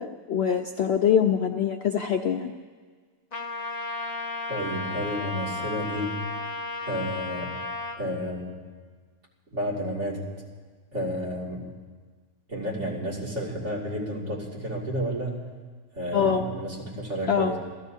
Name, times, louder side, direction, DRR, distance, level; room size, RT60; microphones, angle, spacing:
voice 1, 0.0-2.5 16.1-16.5 17.3-17.5, left 8 dB, 85° left, 6 dB, 0.5 m, -24 dB
Trumpet, 3.3-8.0, left 3 dB, 35° left, 0.8 m, -33 dB
voice 2, 4.5-6.2 6.9-7.6 8.0-8.6 9.5-10.3 10.9-11.7 12.5-15.5 15.9-17.6, equal, 45° right, -5 dB, 2.9 m, -31 dB
27.0 x 16.0 x 2.8 m, 1.5 s
omnidirectional pair, 1.7 m